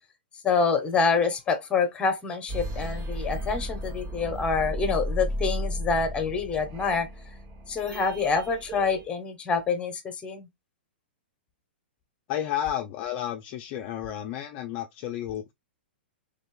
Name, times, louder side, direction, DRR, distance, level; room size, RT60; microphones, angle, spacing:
voice 1, 0.4-7.1 7.7-10.5, left 5 dB, 20° left, 1.5 m, -26 dB
sound 1, 2.5-9.1, equal, 40° right, 2.2 m, -34 dB
voice 2, 12.3-15.5, left 11 dB, 40° left, 0.6 m, -32 dB
4.0 x 3.4 x 3.3 m
figure-of-eight pair, 110°, 6 cm